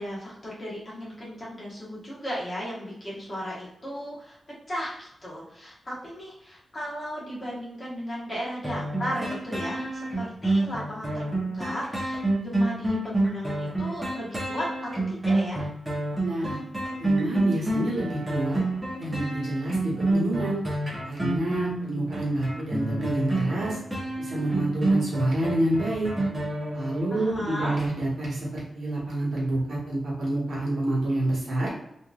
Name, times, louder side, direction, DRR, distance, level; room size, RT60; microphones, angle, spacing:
voice 1, 0.0-4.4 4.7-15.7 27.1-27.8, equal, 30° left, -6 dB, 1.2 m, -35 dB
sound 1, 8.6-27.3 27.8-27.9, right 2 dB, 10° right, 0.8 m, -28 dB
voice 2, 16.2-16.6 17.0-18.6 19.0-20.6 21.0-23.8 24.2-26.1 26.7-31.7, right 1 dB, 75° right, -4 dB, 1.2 m, -28 dB
2.9 x 2.6 x 2.3 m, 0.80 s
wide cardioid pair, 145°, 0 cm